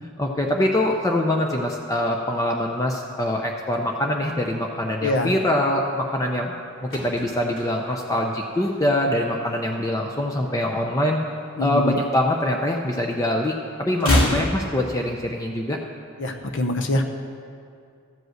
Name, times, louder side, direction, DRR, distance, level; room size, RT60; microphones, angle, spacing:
voice 1, 0.0-6.5 6.8-11.2 11.6-15.8, left 1 dB, 15° left, 1 dB, 0.5 m, -24 dB
voice 2, 5.0-5.3 11.6-12.0 14.0-14.4 16.2-17.0, left 2 dB, 60° left, 6 dB, 0.7 m, -24 dB
sound 1, 6.5-9.2 9.5-9.8 10.0-11.5 11.8-13.1 13.4-15.5 15.8-15.9, left 1 dB, 85° left, 2.3 m, -29 dB
13.5 x 5.3 x 7.8 m, 2.4 s
head